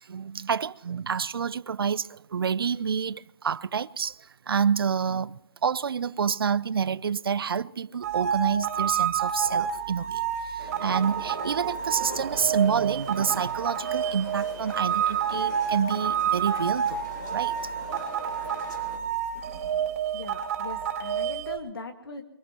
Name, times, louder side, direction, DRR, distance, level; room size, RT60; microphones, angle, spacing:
voice 1, 0.0-17.5, right 7 dB, 65° right, 0.5 m, -28 dB
sound 1, 8.0-21.6, right 8 dB, 35° right, 3.3 m, -29 dB
sound 2, 10.6-19.0, left 3 dB, 50° left, 4.4 m, -43 dB
voice 2, 20.1-22.2, left 3 dB, 65° left, 1.8 m, -40 dB
23.5 x 19.5 x 3.0 m
hypercardioid pair, 160°, 13 cm